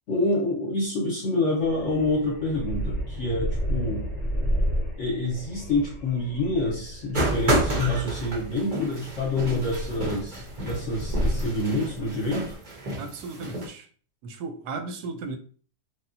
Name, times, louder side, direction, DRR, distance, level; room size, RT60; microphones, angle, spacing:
voice 1, 0.1-4.1 5.0-12.6, left 2 dB, 55° left, 0.9 m, -27 dB
sound 1, 1.6-12.6, equal, 15° right, 0.9 m, -32 dB
sound 2, 7.1-13.7, right 2 dB, 45° right, 0.6 m, -30 dB
voice 2, 13.0-13.9 14.2-15.4, right 4 dB, 75° right, 1.1 m, -35 dB
3.4 x 2.3 x 2.6 m
omnidirectional pair, 1.8 m